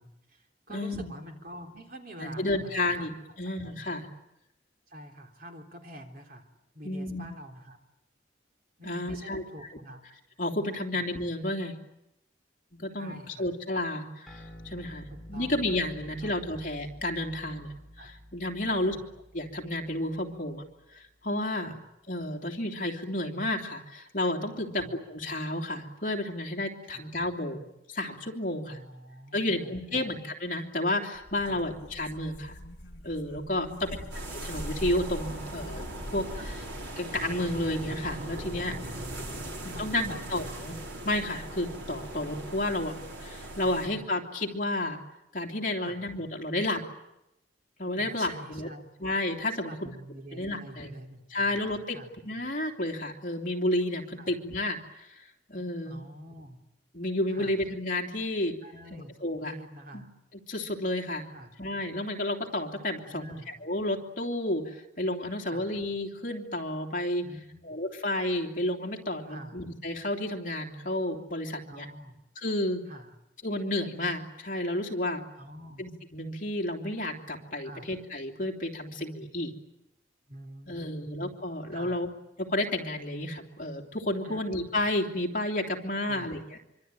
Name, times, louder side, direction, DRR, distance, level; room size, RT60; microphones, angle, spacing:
voice 1, 0.0-3.1 3.6-3.8 4.9-6.5 6.7-7.8 8.8-10.0 10.9-11.1 13.0-13.5 15.1-15.6 16.2-16.6 18.0-18.1 18.6-19.0 21.6-21.8 24.6-24.9 26.9-27.1 28.7-30.1 31.4-31.6 33.6-34.1 36.4-36.6 38.6-40.5 43.6-44.1 45.8-46.1 48.0-48.9 49.6-51.6 51.9-52.1 54.2-54.4 55.9-56.6 57.3-57.6 58.6-60.1 61.3-61.5 63.1-63.5 65.4-65.7 67.2-67.6 69.3-69.6 71.7-72.2 72.9-73.1 75.4-75.8 77.6-77.9 80.3-81.1 81.7-82.0 84.2-84.6 86.0-86.3, equal, 50° right, 3 dB, 3.6 m, -46 dB
voice 2, 0.7-1.1 2.2-4.1 6.8-7.3 8.8-9.4 10.4-11.7 12.7-18.9 19.3-20.6 20.9-21.7 22.1-28.8 29.3-32.6 33.0-33.7 34.4-35.8 36.1-36.6 37.0-38.7 39.6-40.7 41.0-42.9 43.2-45.0 45.3-46.8 47.8-48.7 49.0-49.9 50.3-50.9 51.3-52.0 52.2-56.0 56.9-58.6 59.2-59.5 59.9-60.0 60.5-61.2 61.6-63.3 63.6-67.3 67.6-71.9 72.4-72.8 73.4-75.2 75.8-79.5 80.7-82.1 82.4-86.4, left 1 dB, 45° left, 2 dB, 3.1 m, -31 dB
sound 1, 14.3-21.1, equal, ahead, 4.1 m, -49 dB
sound 2, 31.1-37.1, equal, 65° left, 3.2 m, -42 dB
sound 3, 34.1-43.9, right 1 dB, 75° right, 5.2 m, -40 dB
25.5 x 25.0 x 9.3 m, 0.88 s
head